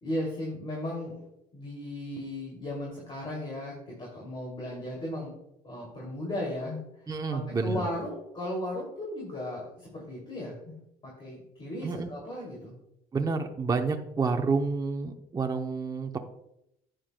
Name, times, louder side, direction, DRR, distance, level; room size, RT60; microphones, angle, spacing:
voice 1, 0.0-1.2 1.5-5.3 5.6-6.8 7.3-10.7 11.0-12.7, left 1 dB, 30° left, -2 dB, 2.8 m, -36 dB
voice 2, 7.1-7.9 11.8-12.1 13.1-16.2, right 4 dB, 20° right, 4 dB, 0.7 m, -29 dB
11.0 x 9.1 x 2.2 m, 0.82 s
cardioid pair, 110°, 17 cm